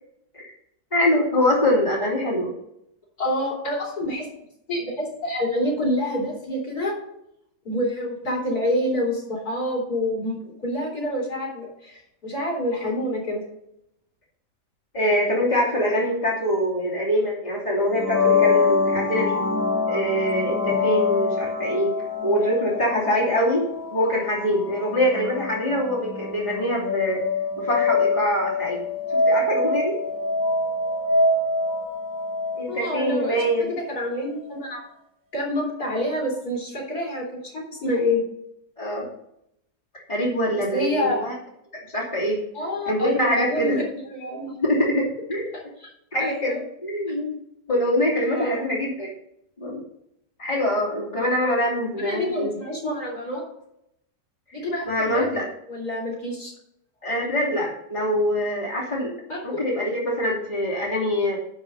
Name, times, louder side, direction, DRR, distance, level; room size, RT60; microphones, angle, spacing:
voice 1, 0.9-2.5 14.9-19.4 19.9-21.9 22.2-27.2 27.6-28.8 29.3-30.0 32.5-33.7 38.8-39.1 40.1-41.3 41.9-42.4 42.9-43.8 44.6-45.5 46.1-47.4 47.7-49.1 49.6-49.8 50.4-52.6 54.9-55.5 57.0-59.1 59.4-61.4, equal, 25° left, -5 dB, 2.8 m, -24 dB
voice 2, 3.2-4.3 4.7-6.9 7.6-13.4 32.7-34.8 35.3-38.2 40.5-41.3 42.5-43.8 44.1-44.6 45.5-45.9 46.2-46.6 48.2-48.6 51.5-51.6 51.9-53.4 54.5-55.3 55.7-56.5 59.3-59.6, left 1 dB, 60° left, -3 dB, 4.4 m, -27 dB
sound 1, 17.9-33.5, left 3 dB, 10° right, 1.7 m, -25 dB
11.0 x 5.4 x 5.4 m, 0.77 s
omnidirectional pair, 1.8 m